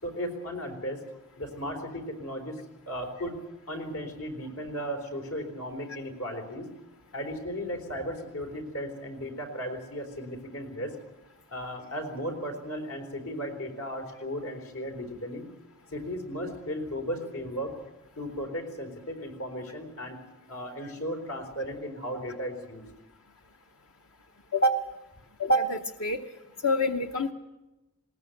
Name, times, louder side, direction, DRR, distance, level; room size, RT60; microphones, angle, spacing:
voice 1, 0.0-1.0 1.4-2.6 2.9-3.4 3.7-6.7 7.1-11.0 11.5-15.5 15.9-17.7 18.2-20.2 20.5-22.8, equal, 85° left, 3 dB, 4.1 m, -35 dB
voice 2, 25.4-26.2 26.6-27.3, equal, 70° left, 5 dB, 0.9 m, -25 dB
20.5 x 19.0 x 7.9 m, 1.0 s
head